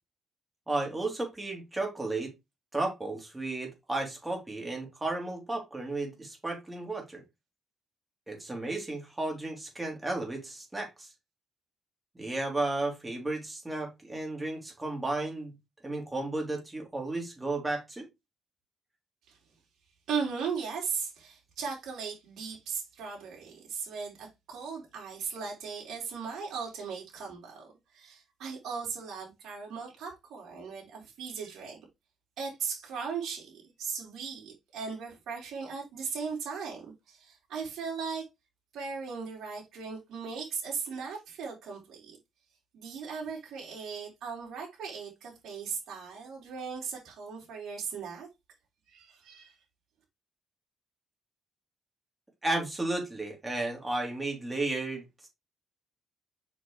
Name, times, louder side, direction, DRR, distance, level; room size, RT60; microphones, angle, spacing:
voice 1, 0.7-2.3 2.7-7.2 8.3-11.1 12.2-15.5 15.8-18.1 52.4-55.0, right 2 dB, 15° right, 3.6 m, -33 dB
voice 2, 20.1-31.8 32.4-38.3 38.7-42.2 42.7-48.3 48.9-49.5, right 5 dB, 75° right, 4.3 m, -38 dB
6.7 x 5.9 x 3.3 m
cardioid pair, 90°, 0 cm